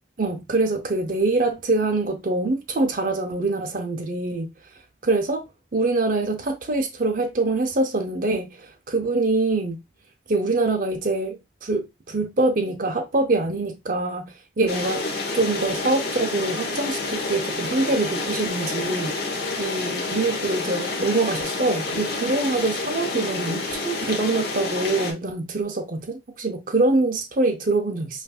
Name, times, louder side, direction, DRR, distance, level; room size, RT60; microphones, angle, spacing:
voice 1, 0.2-4.5 5.0-5.4 5.7-9.8 10.3-15.0 15.3-19.2 19.6-28.2, right 2 dB, 45° right, 0.6 m, -24 dB
sound 1, 14.7-25.1, left 3 dB, 55° left, 1.0 m, -29 dB
5.4 x 2.6 x 2.4 m
head